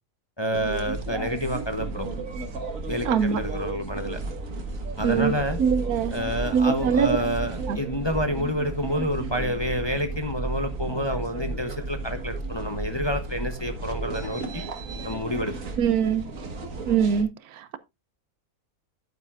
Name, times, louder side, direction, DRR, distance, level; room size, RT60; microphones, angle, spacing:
voice 1, 0.4-2.1 2.9-4.2 5.0-5.6 6.1-14.6 15.0-15.7, equal, 20° left, 0.8 m, -28 dB
sound 1, 0.5-17.2, right 3 dB, 60° right, 1.9 m, -33 dB
voice 2, 3.1-3.4 5.0-5.3 5.6-6.1 6.5-7.2 7.7-7.8 15.8-16.3 16.9-17.3 17.6-17.8, right 7 dB, 75° right, 1.2 m, -22 dB
11.0 x 9.1 x 2.5 m
omnidirectional pair, 1.6 m